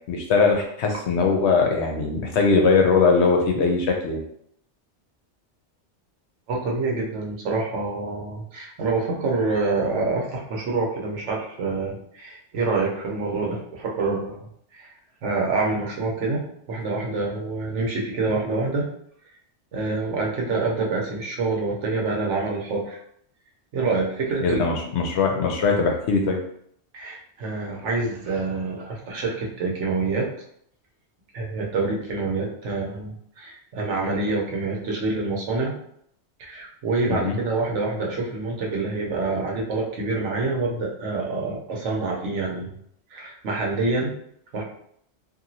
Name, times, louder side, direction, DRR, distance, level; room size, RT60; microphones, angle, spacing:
voice 1, 0.1-4.2 24.4-26.4 37.1-37.4, left 4 dB, 75° left, 2 dB, 0.9 m, -21 dB
voice 2, 6.5-14.4 14.7-14.9 15.2-16.4 16.7-18.9 19.7-23.0 23.7-24.8 26.9-30.3 31.3-35.7 36.4-42.7 43.1-44.1 44.5-44.6, right 3 dB, 85° right, -1 dB, 1.1 m, -26 dB
2.9 x 2.6 x 2.6 m, 0.68 s
omnidirectional pair, 1.2 m